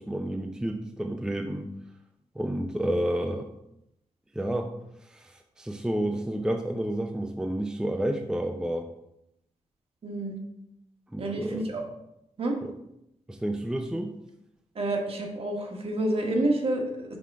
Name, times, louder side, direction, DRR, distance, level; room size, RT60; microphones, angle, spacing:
voice 1, 0.0-1.7 2.4-3.5 4.3-4.7 5.0-8.9 11.1-11.6 12.6-12.7 13.3-14.1, right 1 dB, 5° right, 4 dB, 0.4 m, -30 dB
voice 2, 10.0-10.4 11.2-11.8 12.4-12.5 14.7-17.2, right 1 dB, 50° right, 2 dB, 1.2 m, -28 dB
5.6 x 3.7 x 4.7 m, 0.81 s
cardioid pair, 105°, 13 cm